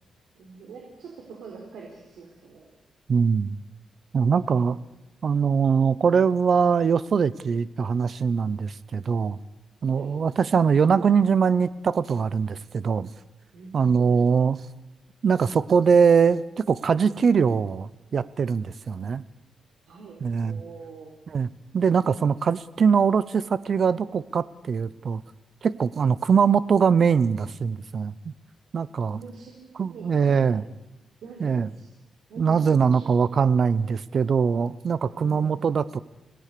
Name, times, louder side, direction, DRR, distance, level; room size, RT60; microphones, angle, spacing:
voice 1, 0.3-2.7 9.8-10.1 13.5-14.3 19.9-21.1 29.1-30.6 31.2-31.9 32.3-33.2 35.0-35.5, right 5 dB, 75° right, 0 dB, 3.9 m, -44 dB
voice 2, 3.1-3.6 4.1-4.8 5.2-9.4 9.8-13.1 13.7-14.6 15.2-19.2 20.2-20.6 21.3-21.5 21.7-25.2 25.6-28.1 28.7-29.2 29.8-30.6 31.4-31.7 32.4-36.0, right 6 dB, 45° right, 18 dB, 0.7 m, -22 dB
27.0 x 18.0 x 6.8 m, 1.0 s
cardioid pair, 140°, 0 cm